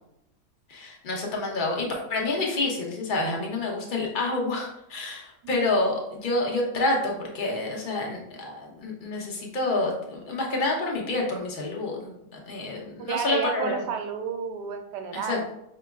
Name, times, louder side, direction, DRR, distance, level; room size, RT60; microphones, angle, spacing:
voice 1, 0.7-13.8 15.1-15.5, left 2 dB, 45° left, 0 dB, 0.7 m, -28 dB
voice 2, 13.0-15.4, right 6 dB, 85° right, 6 dB, 1.2 m, -31 dB
5.0 x 3.0 x 2.3 m, 0.81 s
omnidirectional pair, 1.8 m